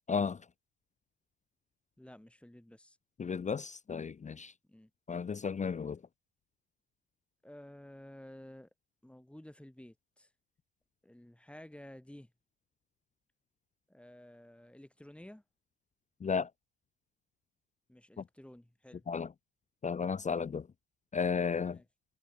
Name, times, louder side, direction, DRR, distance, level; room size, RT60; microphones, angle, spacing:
voice 1, 0.1-0.4 3.2-4.5 5.1-6.0 16.2-16.5 18.2-18.3 19.1-19.3 19.8-20.7 21.1-21.8, left 5 dB, 20° left, 1.1 m, -33 dB
voice 2, 2.0-3.0 4.7-4.9 7.4-8.7 9.0-10.3 11.0-12.3 13.9-15.4 17.9-19.1 21.7-21.8, left 1 dB, 5° left, 7.6 m, -53 dB
supercardioid pair, 110°, 36 cm